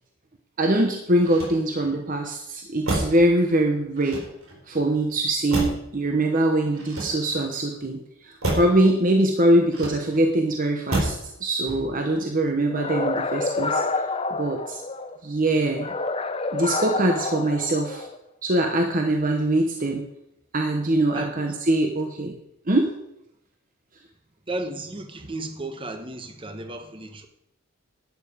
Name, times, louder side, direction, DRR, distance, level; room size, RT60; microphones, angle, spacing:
voice 1, 0.6-4.2 4.7-13.8 14.4-14.8 15.2-15.9 16.5-18.1 18.4-20.0 20.5-22.4 22.7-22.9, right 1 dB, 40° right, 3 dB, 1.1 m, -23 dB
Motor vehicle (road), 1.2-2.0 2.8-3.3 4.0-4.6 5.5-6.0 6.7-7.5 8.4-8.8 9.7-10.3 10.9-11.3 11.6-12.1, right 1 dB, 85° right, 4.2 m, -29 dB
sound 1, 12.7-15.2 15.8-18.2, left 3 dB, 25° left, 0.6 m, -28 dB
voice 2, 24.5-27.3, right 2 dB, 25° right, 8 dB, 1.0 m, -34 dB
11.5 x 9.4 x 5.0 m, 0.80 s
head